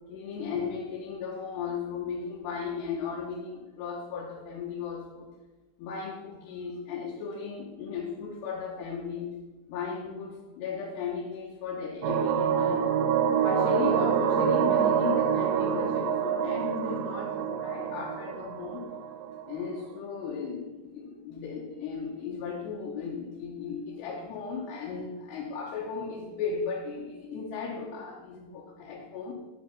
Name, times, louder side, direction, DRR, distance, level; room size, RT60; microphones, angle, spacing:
voice 1, 0.1-5.3 5.8-9.3 9.7-12.9 13.4-18.9 19.5-29.3, left 5 dB, 75° left, -2 dB, 3.2 m, -36 dB
sound 1, 12.0-19.6, right 8 dB, 90° right, 1.9 m, -26 dB
9.5 x 6.7 x 6.8 m, 1.2 s
omnidirectional pair, 4.9 m